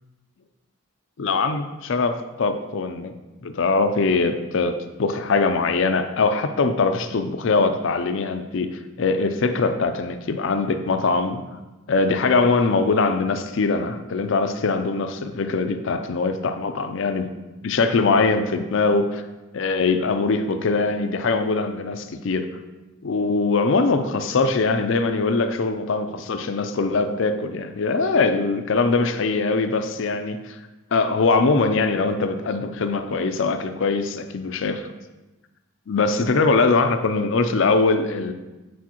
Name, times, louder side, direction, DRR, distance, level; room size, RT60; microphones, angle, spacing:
voice 1, 1.2-3.1 3.4-11.4 11.9-17.3 17.6-19.2 19.5-22.5 23.0-30.6 30.9-34.8 35.9-38.3, left 3 dB, 60° left, 8 dB, 0.5 m, -22 dB
8.3 x 4.7 x 3.0 m, 1.1 s
head